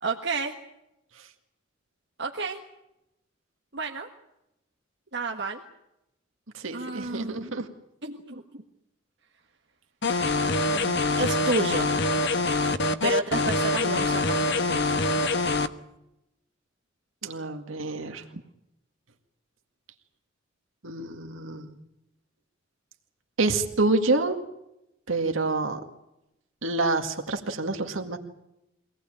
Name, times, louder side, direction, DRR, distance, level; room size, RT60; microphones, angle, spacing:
voice 1, 0.0-0.5 2.2-2.6 3.7-4.1 5.1-5.6 6.7-7.5 8.0-8.6 10.7-11.9 13.0-14.8, right 3 dB, 60° right, 2 dB, 1.6 m, -31 dB
voice 2, 6.5-7.7 17.2-18.2 20.8-21.8 23.4-24.4 25.1-25.8 26.6-28.2, right 3 dB, 85° right, 4 dB, 2.0 m, -27 dB
sound 1, 10.0-15.7, left 2 dB, 60° left, 1.2 m, -25 dB
24.5 x 18.5 x 9.0 m, 0.87 s
head